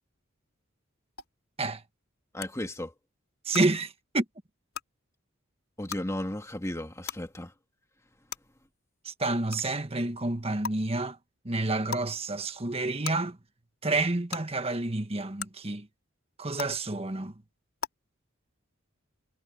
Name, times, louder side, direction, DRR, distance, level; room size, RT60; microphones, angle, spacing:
sound 1, 1.2-1.3 2.4-2.5 3.5-3.6 4.7-4.8 5.9-6.0 7.1-7.2 8.3-8.4 9.5-9.6 10.6-10.7 11.9-12.1 13.0-13.1 14.3-14.4 15.4-15.5 16.6-16.7 17.8-17.9, left 7 dB, 85° left, 3.8 m, -35 dB
voice 1, 2.3-2.9 5.8-7.5, left 1 dB, 15° left, 2.2 m, -34 dB
voice 2, 3.4-4.2 9.0-11.2 11.4-13.4 13.8-15.9 16.4-17.3, right 2 dB, 30° right, 1.4 m, -29 dB
head